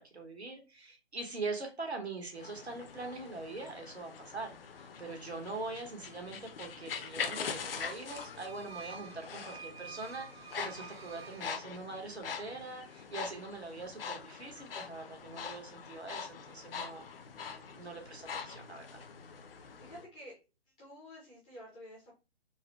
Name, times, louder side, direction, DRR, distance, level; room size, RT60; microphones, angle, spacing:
voice 1, 0.0-17.1 17.7-19.0, right 3 dB, 90° right, 3 dB, 1.3 m, -43 dB
sound 1, 2.3-20.0, left 6 dB, 60° left, 0.6 m, -43 dB
sound 2, 8.1-12.2, right 6 dB, 70° right, 0.6 m, -50 dB
voice 2, 19.8-20.3 20.7-22.1, equal, 5° left, -6 dB, 0.4 m, -50 dB
3.9 x 2.1 x 2.9 m, 0.30 s
figure-of-eight pair, 135°, 32 cm